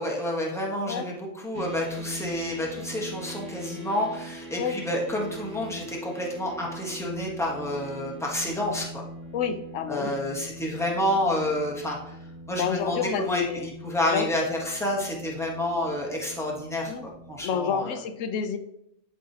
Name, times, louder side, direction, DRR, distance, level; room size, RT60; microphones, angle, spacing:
voice 1, 0.0-9.0 9.9-12.0 12.5-18.0, left 1 dB, ahead, -2 dB, 1.2 m, -29 dB
sound 1, 1.5-17.4, right 1 dB, 55° right, 1.9 m, -42 dB
voice 2, 9.3-10.1 12.5-13.7 14.1-14.3 16.9-17.1 17.4-18.6, left 7 dB, 80° left, 9 dB, 1.0 m, -29 dB
11.0 x 4.7 x 2.8 m, 0.79 s
omnidirectional pair, 1.3 m